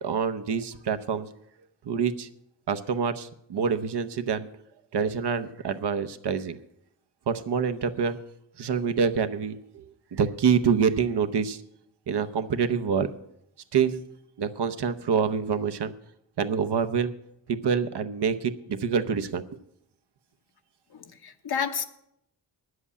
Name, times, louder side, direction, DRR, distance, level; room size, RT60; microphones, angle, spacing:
voice 1, 0.0-1.3 1.8-2.3 2.7-4.5 4.9-6.6 7.3-8.2 8.6-9.8 10.1-11.6 12.1-13.1 13.7-14.0 14.4-15.9 16.4-17.1 17.5-19.6, right 6 dB, 70° right, 9 dB, 0.9 m, -26 dB
voice 2, 20.9-21.9, left 7 dB, 60° left, 7 dB, 1.1 m, -31 dB
9.7 x 7.9 x 8.4 m, 0.79 s
cardioid pair, 75°, 43 cm